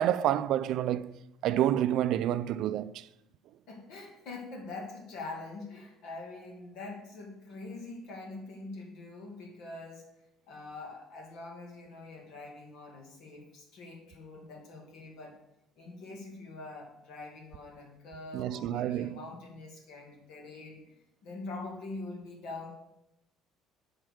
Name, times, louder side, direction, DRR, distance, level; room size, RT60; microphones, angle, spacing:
voice 1, 0.0-3.0 18.3-19.2, right 11 dB, 65° right, 0.3 m, -29 dB
voice 2, 3.7-10.0 10.5-15.4 15.8-21.0 21.2-22.7, left 3 dB, 70° left, 2.3 m, -44 dB
7.7 x 4.5 x 6.5 m
cardioid pair, 115°, 0 cm